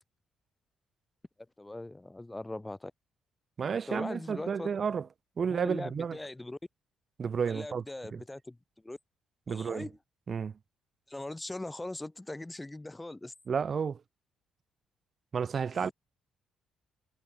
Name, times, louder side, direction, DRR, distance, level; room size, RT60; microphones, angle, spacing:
voice 1, 1.6-2.9 3.9-4.7 5.5-6.6 7.5-8.6 8.8-9.0 9.5-10.0 11.1-13.3 15.8-15.9, left 2 dB, 15° left, 7.8 m, -40 dB
voice 2, 3.6-5.1 5.4-6.2 7.2-7.8 8.1-8.2 9.5-9.9 10.3-10.5 13.5-14.0 15.3-15.9, right 6 dB, 45° right, 2.0 m, -31 dB
cardioid pair, 90°, 0 cm